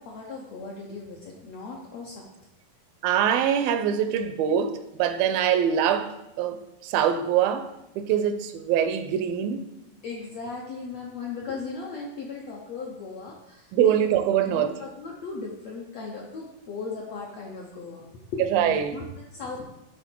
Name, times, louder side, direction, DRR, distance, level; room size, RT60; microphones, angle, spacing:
voice 1, 0.0-2.2 10.0-13.9 14.5-19.6, left 4 dB, 75° left, 1.5 m, -37 dB
voice 2, 3.0-7.7 8.0-9.7 13.7-14.8 18.5-19.0, right 9 dB, 85° right, 2.4 m, -24 dB
11.5 x 3.9 x 4.5 m
omnidirectional pair, 4.1 m